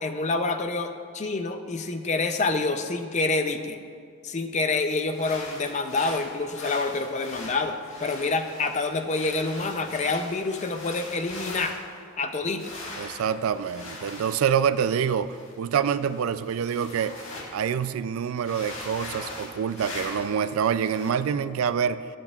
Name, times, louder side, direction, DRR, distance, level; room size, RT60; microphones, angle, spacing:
voice 1, 0.0-3.8 4.2-11.8 12.2-12.6, left 3 dB, 30° left, 7 dB, 0.5 m, -27 dB
sound 1, 4.9-12.0 12.6-17.5 17.8-17.9 18.3-20.4 20.8-21.1, left 2 dB, 65° left, 1.8 m, -41 dB
voice 2, 13.0-17.2 17.5-22.0, right 7 dB, 80° right, 14 dB, 0.3 m, -26 dB
19.0 x 7.6 x 2.4 m, 2.2 s
head